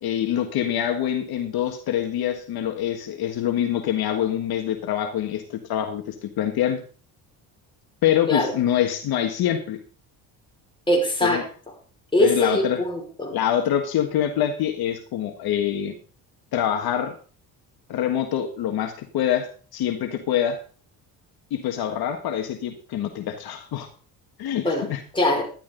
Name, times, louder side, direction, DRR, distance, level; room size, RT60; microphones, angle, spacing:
voice 1, 0.0-6.8 8.0-9.8 11.2-11.4 12.2-12.8 13.3-15.9 16.5-17.1 17.9-20.6 21.5-23.9 24.4-25.0, left 10 dB, 65° left, 5 dB, 1.6 m, -25 dB
voice 2, 10.9-11.5 12.1-13.4 24.6-24.9 25.1-25.4, left 1 dB, 10° left, 0 dB, 4.9 m, -22 dB
12.0 x 11.5 x 3.9 m, 0.39 s
cardioid pair, 110°, 40 cm